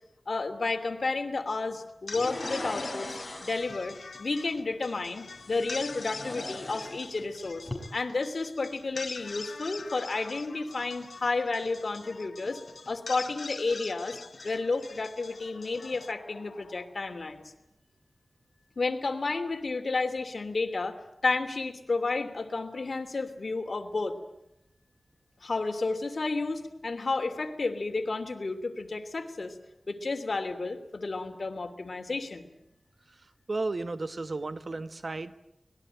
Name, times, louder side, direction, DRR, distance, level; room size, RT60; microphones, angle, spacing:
voice 1, 0.3-12.6 12.9-14.2 14.4-17.4 18.8-24.2 25.4-29.5 29.9-32.5, left 3 dB, 65° left, 5 dB, 3.0 m, -31 dB
sound 1, 1.9-17.1, left 4 dB, 85° left, 1.2 m, -44 dB
sound 2, 2.1-3.8 5.4-7.3 7.6-7.8, left 1 dB, 15° left, 6.6 m, -39 dB
voice 2, 33.1-35.4, right 3 dB, 60° right, 11 dB, 1.3 m, -34 dB
25.0 x 20.5 x 9.1 m, 0.83 s
wide cardioid pair, 90°, 0 cm